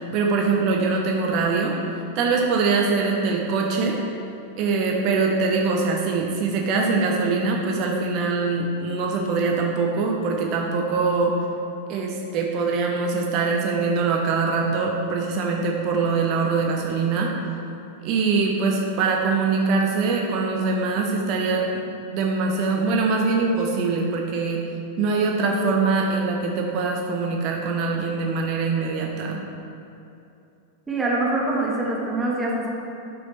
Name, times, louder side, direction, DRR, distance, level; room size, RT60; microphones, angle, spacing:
voice 1, 0.0-4.0 4.6-11.3 11.9-17.3 18.0-21.8 22.1-24.6 25.0-29.4, right 4 dB, 45° right, 0 dB, 0.9 m, -23 dB
voice 2, 30.9-32.7, right 2 dB, 15° right, -4 dB, 1.8 m, -24 dB
10.5 x 6.2 x 3.3 m, 2.7 s
figure-of-eight pair, 95°, 0 cm